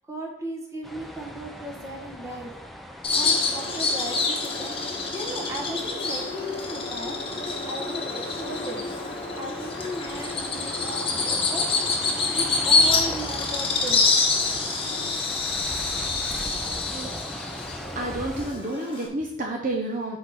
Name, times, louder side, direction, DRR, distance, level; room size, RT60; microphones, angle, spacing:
voice 1, 0.1-2.5 3.1-8.8 9.4-11.6 12.3-14.0, right 1 dB, 15° right, 0 dB, 1.3 m, -36 dB
sound 1, 0.8-18.5, equal, ahead, 0.5 m, -39 dB
Bird vocalization bird call bird song, 3.0-19.1, left 4 dB, 30° left, 1.2 m, -26 dB
voice 2, 18.0-20.2, right 1 dB, 45° right, 0 dB, 0.8 m, -30 dB
6.5 x 4.5 x 4.9 m, 0.71 s
head